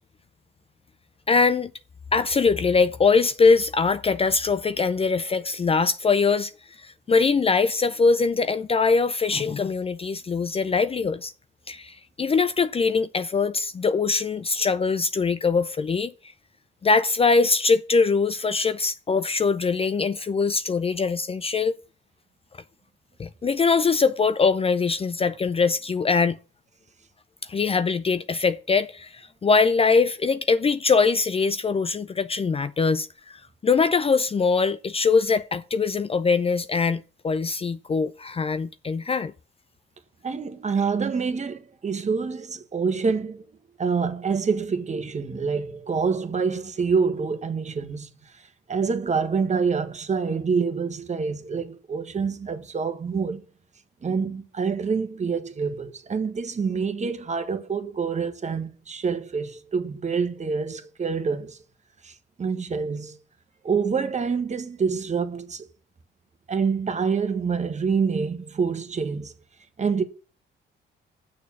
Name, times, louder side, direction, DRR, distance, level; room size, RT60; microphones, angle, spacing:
voice 1, 1.3-1.7 2.1-6.5 6.8-11.3 11.7-16.1 16.8-21.8 23.2-26.4 27.5-39.3, left 4 dB, 30° left, 0.5 m, -22 dB
voice 2, 40.2-43.4 43.8-48.1 48.7-53.4 54.0-61.6 62.0-62.1 62.4-63.2 63.6-65.7 66.5-69.3 69.8-70.0, right 5 dB, 35° right, 1.4 m, -26 dB
6.8 x 6.5 x 7.2 m
cardioid pair, 90°, 20 cm